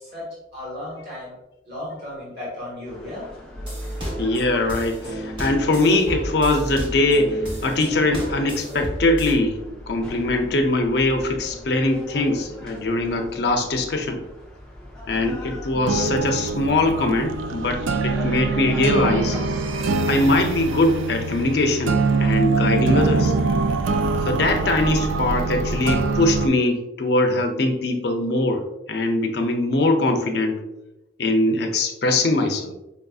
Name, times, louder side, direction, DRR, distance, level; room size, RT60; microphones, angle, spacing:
voice 1, 0.0-1.4 1.7-3.3, left 1 dB, 55° right, -7 dB, 1.5 m, -35 dB
sound 1, 2.8-20.9, left 1 dB, 5° left, 0.5 m, -40 dB
sound 2, 3.6-9.3, equal, 25° right, 0.8 m, -32 dB
voice 2, 4.2-9.6 9.9-14.2 15.1-19.4 20.1-23.3 24.3-30.6 31.2-32.7, left 2 dB, 55° left, 4 dB, 0.5 m, -22 dB
sound 3, 15.7-26.5, right 3 dB, 85° right, 0.4 m, -23 dB
5.2 x 2.6 x 2.3 m, 0.95 s
head